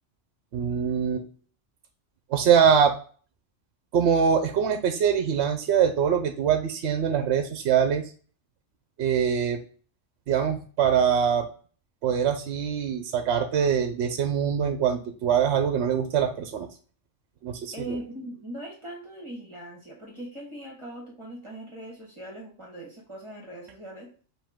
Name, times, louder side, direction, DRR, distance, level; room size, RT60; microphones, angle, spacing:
voice 1, 0.5-1.3 2.3-2.9 3.9-8.0 9.0-9.6 10.3-11.5 12.0-16.7 17.4-18.0, right 7 dB, 70° right, 7 dB, 0.8 m, -23 dB
voice 2, 17.7-24.1, right 1 dB, 25° right, -3 dB, 1.5 m, -40 dB
5.3 x 2.8 x 3.5 m, 0.41 s
omnidirectional pair, 1.2 m